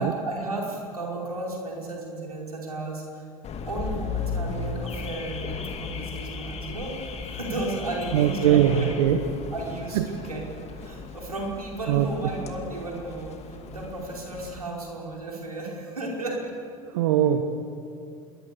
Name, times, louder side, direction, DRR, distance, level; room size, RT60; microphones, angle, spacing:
voice 1, 0.0-3.3 3.6-8.9 9.5-16.5, right 2 dB, 85° right, -1 dB, 5.3 m, -34 dB
Car / Alarm, 3.4-14.6, left 5 dB, 35° left, 2.5 m, -36 dB
voice 2, 8.1-9.2 9.9-10.1 11.9-12.1 16.9-17.4, right 10 dB, 65° right, 8 dB, 1.3 m, -21 dB
27.0 x 22.5 x 7.1 m, 2.6 s
figure-of-eight pair, 75°, 19 cm